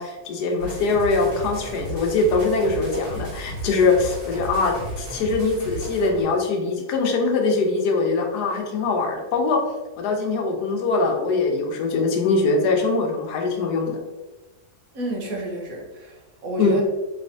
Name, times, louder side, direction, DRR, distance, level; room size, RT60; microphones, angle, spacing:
voice 1, 0.0-9.6 10.0-14.0 16.6-16.8, left 3 dB, 85° left, 2 dB, 1.3 m, -22 dB
sound 1, 0.6-6.2, right 1 dB, 85° right, 2.0 m, -34 dB
voice 2, 14.9-16.8, right 2 dB, 65° right, -1 dB, 1.2 m, -30 dB
4.0 x 3.2 x 2.6 m, 1.1 s
omnidirectional pair, 1.7 m